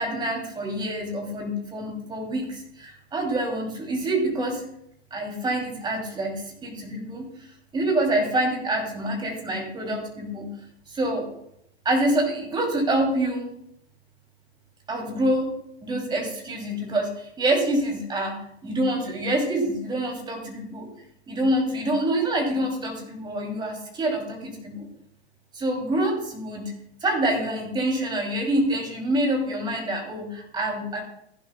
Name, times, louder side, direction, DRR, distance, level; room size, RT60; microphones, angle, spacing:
voice 1, 0.0-4.6 5.1-7.3 7.7-10.5 10.9-11.3 11.8-13.5 14.9-20.9 21.3-24.9 25.5-26.7 27.0-31.0, right 1 dB, 15° right, 1 dB, 2.8 m, -26 dB
15.0 x 11.0 x 2.2 m, 0.74 s
hypercardioid pair, 120°, 34 cm